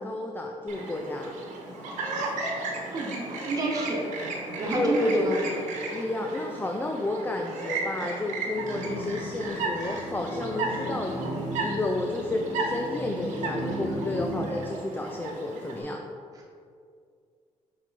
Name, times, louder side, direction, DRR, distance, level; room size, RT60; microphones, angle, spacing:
voice 1, 0.0-1.3 4.7-5.3 5.9-16.0, left 2 dB, 15° left, 2 dB, 0.4 m, -31 dB
Chirp tweet, 0.7-15.8, right 3 dB, 80° right, 1.2 m, -35 dB
voice 2, 2.9-4.0 4.6-5.5, right 2 dB, 30° right, -3 dB, 1.3 m, -29 dB
sound 1, 8.5-14.4, equal, 65° left, 1.4 m, -35 dB
6.2 x 4.5 x 4.2 m, 2.3 s
cardioid pair, 110°, 12 cm